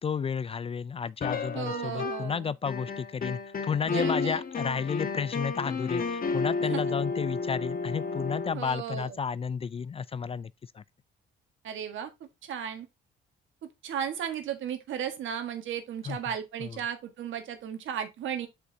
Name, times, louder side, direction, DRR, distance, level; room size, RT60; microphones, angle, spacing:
voice 1, 0.0-10.8 16.1-16.2 16.6-16.8, left 6 dB, 30° left, 0.3 m, -32 dB
sound 1, 1.2-2.4 2.7-8.5, left 4 dB, 45° left, 1.4 m, -32 dB
voice 2, 1.5-2.5 3.8-4.4 6.7-6.8 8.5-9.2 11.6-12.1 12.4-12.9 13.6-18.5, right 8 dB, 75° right, 1.6 m, -35 dB
8.0 x 5.0 x 2.7 m
cardioid pair, 90°, 20 cm